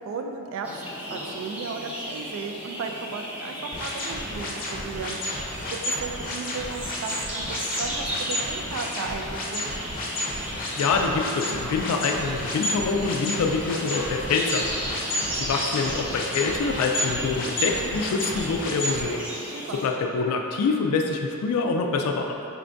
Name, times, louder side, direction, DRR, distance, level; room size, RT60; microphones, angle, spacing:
voice 1, 0.0-5.2 5.8-9.7 19.5-19.9, right 4 dB, 65° right, 4 dB, 0.3 m, -35 dB
sound 1, 0.6-19.9, equal, 5° right, 0.6 m, -35 dB
sound 2, 3.7-19.0, left 1 dB, 40° left, 0.6 m, -31 dB
Car / Mechanisms, 9.7-18.3, equal, 85° right, 1.4 m, -46 dB
voice 2, 10.4-14.8 15.0-19.2 19.8-22.5, left 4 dB, 85° left, 3 dB, 0.3 m, -26 dB
4.4 x 2.5 x 3.4 m, 2.8 s
head